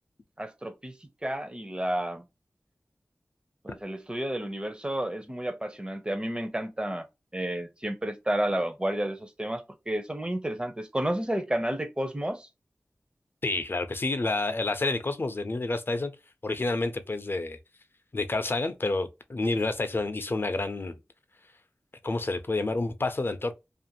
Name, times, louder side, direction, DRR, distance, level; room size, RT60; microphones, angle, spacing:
voice 1, 0.4-2.3 3.6-7.1 7.3-12.5, right 1 dB, 20° right, 0.6 m, -31 dB
voice 2, 13.4-16.1 16.4-17.6 18.1-21.0 22.0-23.5, left 2 dB, 50° left, 0.5 m, -29 dB
2.5 x 2.5 x 2.8 m
wide cardioid pair, 50°, 5 cm